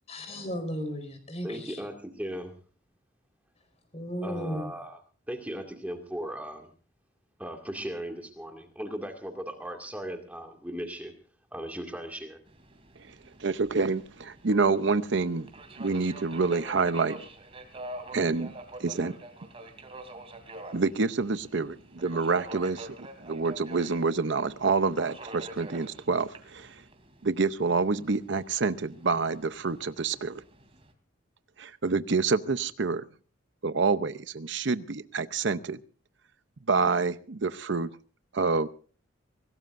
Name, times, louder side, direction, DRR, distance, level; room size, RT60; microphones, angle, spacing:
voice 1, 0.1-1.9 3.9-4.7, equal, 30° left, 4.8 m, -35 dB
voice 2, 1.4-2.5 4.2-5.0 5.3-6.7 7.4-11.1 11.5-12.4, equal, 5° right, 2.2 m, -37 dB
Subway metro underground, 12.5-30.9, right 2 dB, 30° right, 3.1 m, -46 dB
voice 3, 13.4-15.5 15.8-17.2 18.1-18.5 18.8-19.2 20.7-26.8 27.2-30.4 31.6-33.1 33.6-35.8 36.7-37.9 38.3-38.7, right 4 dB, 60° right, 0.7 m, -27 dB
24.5 x 18.0 x 2.6 m
head